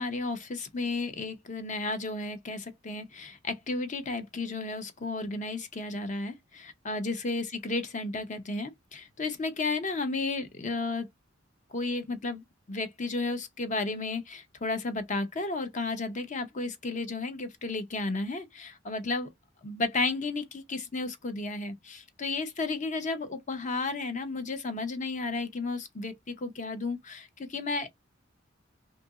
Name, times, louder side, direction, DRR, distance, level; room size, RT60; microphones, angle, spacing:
voice 1, 0.0-11.1 11.7-19.3 19.6-27.9, left 3 dB, 40° left, 0.7 m, -33 dB
2.8 x 2.6 x 3.6 m
head